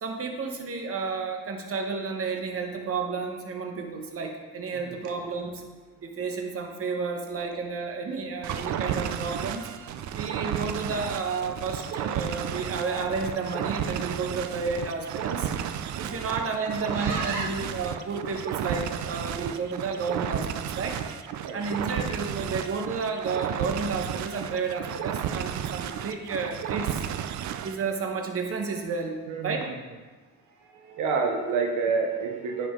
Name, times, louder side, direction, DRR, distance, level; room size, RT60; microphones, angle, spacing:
voice 1, 0.0-5.6 6.0-9.6 10.1-15.5 16.0-21.0 21.5-27.0 27.6-29.2 29.4-29.6, right 4 dB, 50° right, 3 dB, 1.2 m, -31 dB
sound 1, 8.4-27.8, right 9 dB, 70° right, 0.5 m, -32 dB
voice 2, 16.9-17.5 21.4-21.6 29.3-29.8 30.7-32.7, right 4 dB, 85° right, 3 dB, 0.9 m, -29 dB
10.0 x 5.1 x 3.7 m, 1.3 s
cardioid pair, 90°, 30 cm